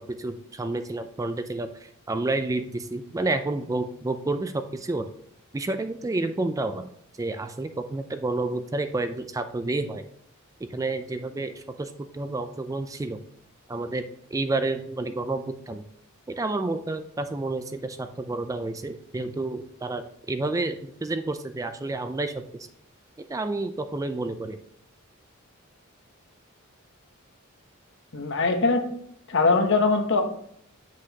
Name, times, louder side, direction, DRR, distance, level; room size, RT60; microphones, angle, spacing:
voice 1, 0.2-5.0 5.5-6.9 7.2-10.0 10.7-13.2 13.7-14.0 14.3-15.8 16.3-22.5 23.3-24.6, right 2 dB, 15° right, 9 dB, 0.3 m, -30 dB
voice 2, 28.1-28.8 29.3-30.2, left 3 dB, 60° left, 6 dB, 1.0 m, -21 dB
7.7 x 6.1 x 2.9 m, 0.67 s
head